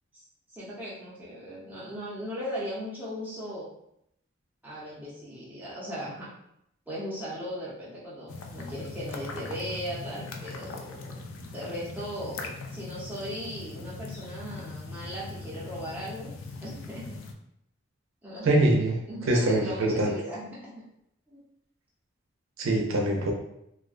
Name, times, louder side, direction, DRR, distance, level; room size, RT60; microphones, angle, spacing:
voice 1, 0.5-3.6 4.6-6.3 6.9-11.2 11.5-16.3 16.6-17.3 18.2-18.7 19.1-20.8 21.3-21.4, equal, 10° right, -8 dB, 0.7 m, -38 dB
sound 1, 8.3-17.3, left 3 dB, 80° left, 0.3 m, -40 dB
voice 2, 18.4-19.0 19.3-20.1 22.6-23.3, right 1 dB, 90° right, 0 dB, 0.5 m, -23 dB
2.3 x 2.1 x 2.4 m, 0.77 s
head